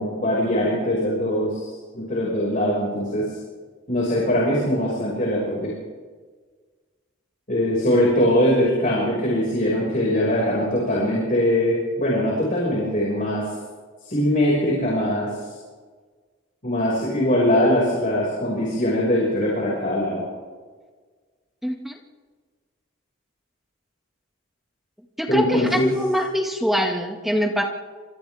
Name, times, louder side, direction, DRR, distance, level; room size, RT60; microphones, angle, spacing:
voice 1, 0.0-1.6 1.9-3.2 3.9-5.7 7.5-13.5 14.0-15.3 16.6-20.2 25.3-25.9, left 1 dB, 40° left, -4 dB, 6.0 m, -21 dB
voice 2, 21.6-21.9 25.2-27.6, equal, ahead, 1 dB, 2.0 m, -23 dB
29.0 x 26.5 x 3.6 m, 1.5 s
head